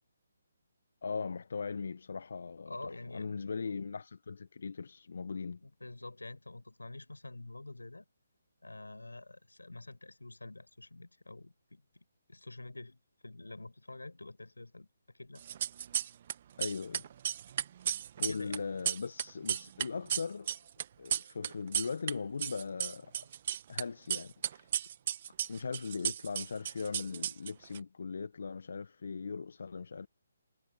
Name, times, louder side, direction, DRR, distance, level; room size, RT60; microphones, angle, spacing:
voice 1, 1.0-5.6 16.6-17.1 18.2-20.5 21.0-23.2 23.7-24.7 25.5-30.1, left 5 dB, 65° left, 1.2 m, -39 dB
voice 2, 2.7-3.3 5.6-8.0 8.6-12.0 12.3-15.4 18.2-18.6, left 2 dB, 90° left, 7.4 m, -47 dB
sound 1, 15.4-16.3 16.6-22.1 22.4-23.8 24.1-27.8, right 10 dB, 45° right, 1.3 m, -34 dB
figure-of-eight pair, 145°, 0 cm